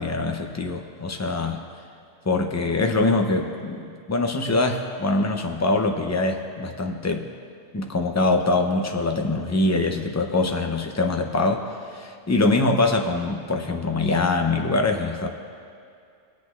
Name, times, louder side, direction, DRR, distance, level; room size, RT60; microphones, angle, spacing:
voice 1, 0.0-1.6 2.3-7.3 7.7-11.7 11.9-15.3, left 2 dB, 20° left, 3 dB, 0.5 m, -23 dB
22.0 x 8.3 x 2.5 m, 2.4 s
omnidirectional pair, 1.1 m